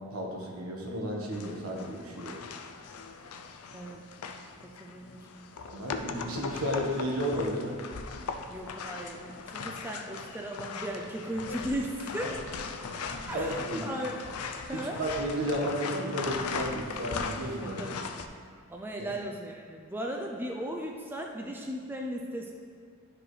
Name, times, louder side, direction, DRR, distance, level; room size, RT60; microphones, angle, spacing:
voice 1, 0.0-2.4 5.6-7.8 12.8-13.8 14.7-18.0 19.0-19.1, equal, 75° right, -1 dB, 1.4 m, -33 dB
sound 1, 1.3-18.3, left 5 dB, 85° left, 0.5 m, -39 dB
voice 2, 4.8-5.5 8.5-12.3 13.3-14.2 14.7-15.0 17.6-18.0 18.7-22.5, right 1 dB, 10° right, 0 dB, 0.4 m, -37 dB
11.5 x 4.9 x 3.2 m, 2.1 s
head